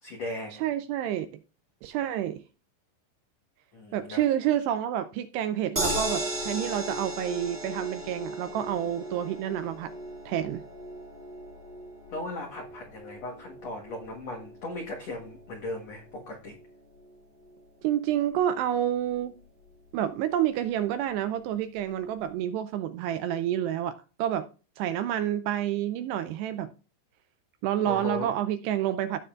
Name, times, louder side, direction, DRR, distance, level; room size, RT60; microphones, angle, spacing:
voice 1, 0.0-0.6 3.7-4.2 12.1-16.6 27.8-28.3, left 1 dB, 90° left, 1.4 m, -37 dB
voice 2, 0.6-1.3 1.8-2.4 3.9-9.9 10.3-10.6 17.8-19.3 19.9-24.5 24.8-26.7 27.6-29.2, right 11 dB, 85° right, 2.4 m, -29 dB
sound 1, 5.8-18.0 18.4-18.5 18.8-18.9, right 1 dB, 15° right, 2.2 m, -37 dB
16.0 x 6.8 x 2.4 m
omnidirectional pair, 5.3 m